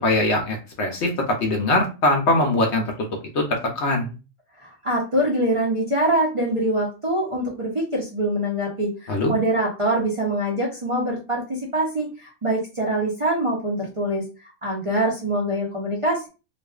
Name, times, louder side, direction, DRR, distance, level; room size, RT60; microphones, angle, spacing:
voice 1, 0.0-2.8 3.3-4.1 9.1-9.3, left 2 dB, 65° left, 2 dB, 0.8 m, -22 dB
voice 2, 4.6-16.3, right 1 dB, 50° right, -3 dB, 0.4 m, -24 dB
2.5 x 2.4 x 2.3 m, 0.31 s
omnidirectional pair, 1.4 m